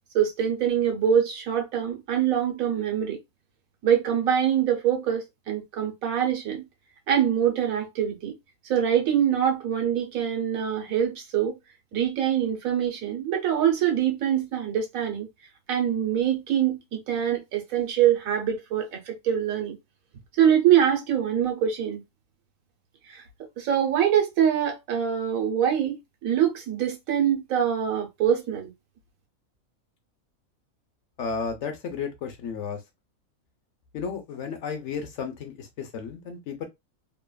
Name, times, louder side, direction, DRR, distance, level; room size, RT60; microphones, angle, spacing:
voice 1, 0.1-3.2 3.8-6.7 7.1-8.3 8.7-11.6 11.9-15.3 15.7-19.8 20.4-22.0 23.1-23.2 23.6-28.7, right 9 dB, 80° right, 1.3 m, -24 dB
voice 2, 31.2-32.8 33.9-36.6, left 6 dB, 65° left, 0.9 m, -33 dB
2.9 x 2.3 x 2.2 m
omnidirectional pair, 1.4 m